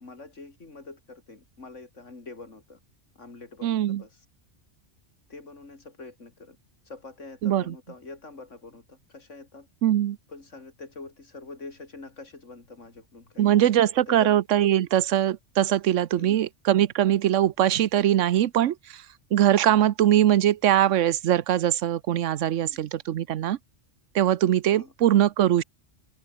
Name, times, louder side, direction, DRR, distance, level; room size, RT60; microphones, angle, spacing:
voice 1, 0.0-2.8 3.2-4.2 5.3-6.6 6.9-9.7 10.3-14.3 16.1-16.5 22.6-22.8 24.8-24.9, left 3 dB, 85° left, 3.7 m, -45 dB
voice 2, 3.6-4.0 7.4-7.7 9.8-10.2 13.4-19.0 19.3-23.6 24.1-25.6, right 11 dB, 90° right, 1.1 m, -22 dB
omnidirectional pair, 1.2 m